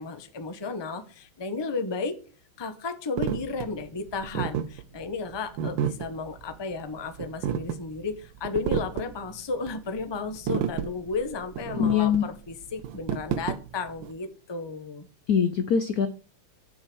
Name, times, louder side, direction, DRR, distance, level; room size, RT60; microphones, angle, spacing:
voice 1, 0.0-2.2 2.6-15.1, left 4 dB, 30° left, 8 dB, 0.4 m, -33 dB
sound 1, 3.2-14.1, right 9 dB, 70° right, 1.4 m, -32 dB
voice 2, 11.8-12.2 15.3-16.1, left 8 dB, 80° left, 11 dB, 0.8 m, -22 dB
8.6 x 6.3 x 6.2 m, 0.38 s
omnidirectional pair, 2.4 m